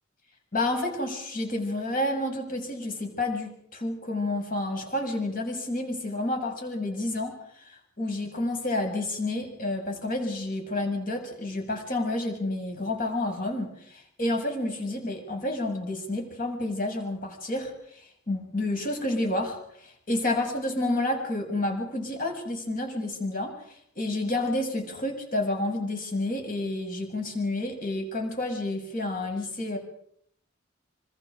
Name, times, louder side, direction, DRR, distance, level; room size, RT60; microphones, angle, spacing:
voice 1, 0.5-17.7 18.3-23.6 24.0-29.8, left 2 dB, 45° left, 3 dB, 7.2 m, -30 dB
27.0 x 25.5 x 5.1 m, 0.68 s
head